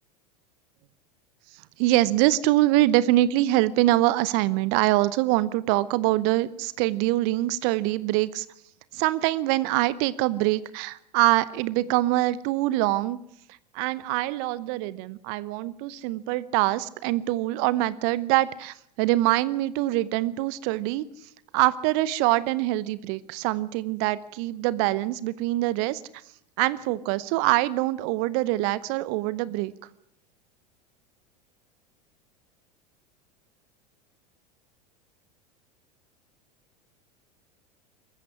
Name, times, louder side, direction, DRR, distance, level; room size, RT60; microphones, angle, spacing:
voice 1, 1.8-8.5 8.9-13.2 13.7-21.0 21.5-26.0 26.6-29.7, right 16 dB, 50° right, 18 dB, 0.9 m, -24 dB
21.0 x 14.5 x 9.9 m, 0.73 s
figure-of-eight pair, 80°, 21 cm